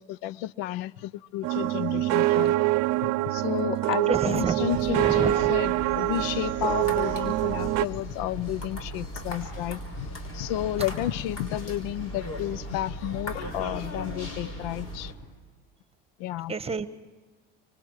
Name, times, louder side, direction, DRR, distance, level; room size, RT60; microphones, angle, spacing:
voice 1, 0.0-2.5 3.0-15.1 16.2-16.5, left 14 dB, 80° left, 0.6 m, -32 dB
sound 1, 1.4-7.9, right 17 dB, 65° right, 0.7 m, -25 dB
voice 2, 4.1-5.5 16.5-16.9, right 5 dB, 20° right, 1.2 m, -29 dB
sound 2, 4.7-15.1, equal, 60° left, 5.6 m, -37 dB
25.5 x 24.0 x 4.8 m
supercardioid pair, 90°, 29 cm